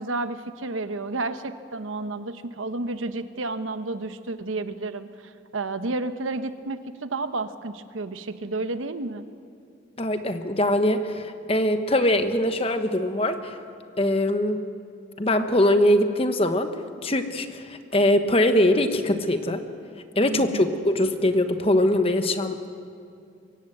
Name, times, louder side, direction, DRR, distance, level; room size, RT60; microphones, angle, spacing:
voice 1, 0.0-9.2 20.3-20.8, right 2 dB, 90° right, 10 dB, 1.0 m, -31 dB
voice 2, 10.0-13.6 14.0-14.6 15.2-16.7 17.0-19.6 20.2-22.7, left 1 dB, 30° left, 8 dB, 1.1 m, -22 dB
23.5 x 17.0 x 8.0 m, 2.5 s
head